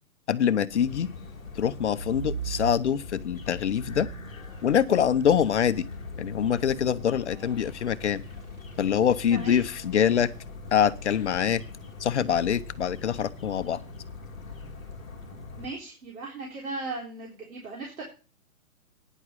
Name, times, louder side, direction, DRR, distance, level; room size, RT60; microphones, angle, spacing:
voice 1, 0.3-1.1 1.5-4.1 4.6-5.9 6.2-8.2 8.8-10.3 10.7-11.6 12.0-13.8, left 8 dB, 50° left, 13 dB, 0.7 m, -24 dB
sound 1, 0.7-15.7, left 4 dB, ahead, 0.6 m, -42 dB
sound 2, 1.8-3.2 3.7-9.2 10.7-11.1, right 5 dB, 50° right, 2.6 m, -40 dB
voice 2, 9.3-9.6 15.5-18.0, right 3 dB, 70° right, -2 dB, 3.9 m, -37 dB
10.0 x 6.0 x 8.2 m, 0.34 s
hypercardioid pair, 165°, 44 cm